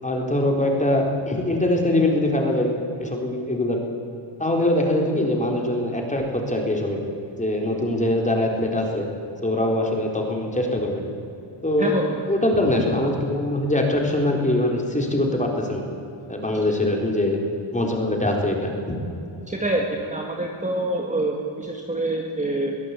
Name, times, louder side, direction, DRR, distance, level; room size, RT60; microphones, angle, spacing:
voice 1, 0.0-2.7 3.0-3.8 4.4-7.0 7.4-9.1 9.4-11.0 11.6-12.0 12.3-15.8 16.3-17.4 17.7-18.7, left 1 dB, 15° left, 1 dB, 4.4 m, -22 dB
voice 2, 11.8-12.1 19.5-22.8, right 2 dB, 15° right, 1 dB, 2.0 m, -26 dB
23.0 x 16.0 x 8.6 m, 2.8 s
cardioid pair, 125°, 50 cm